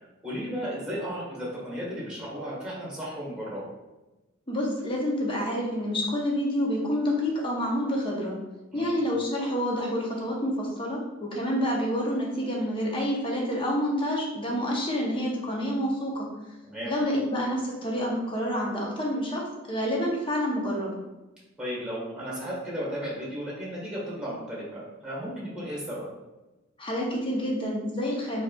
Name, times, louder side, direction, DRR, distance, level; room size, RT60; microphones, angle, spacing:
voice 1, 0.2-3.7 8.7-8.9 16.6-16.9 21.6-26.1, equal, 5° right, -6 dB, 1.4 m, -34 dB
voice 2, 4.5-8.4 8.7-16.3 16.8-20.9 26.8-28.4, equal, 25° left, -2 dB, 0.8 m, -28 dB
4.6 x 2.8 x 2.3 m, 1.1 s
head